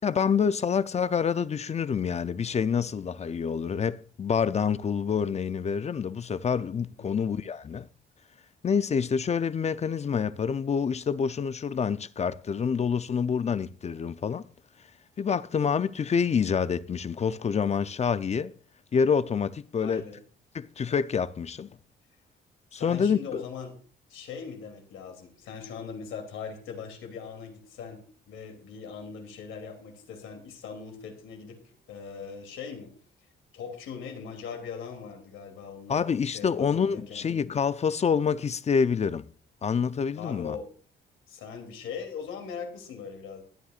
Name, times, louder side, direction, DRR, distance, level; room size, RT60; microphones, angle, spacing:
voice 1, 0.0-7.9 8.6-14.5 15.2-18.5 18.9-20.0 20.5-21.7 22.7-23.4 35.9-39.2 39.6-40.6, left 6 dB, 35° left, 0.5 m, -27 dB
voice 2, 19.8-20.2 22.7-23.7 24.1-32.9 33.5-37.2 40.1-40.7 41.3-43.4, left 6 dB, 85° left, 2.9 m, -40 dB
21.5 x 9.3 x 2.5 m
cardioid pair, 90°, 20 cm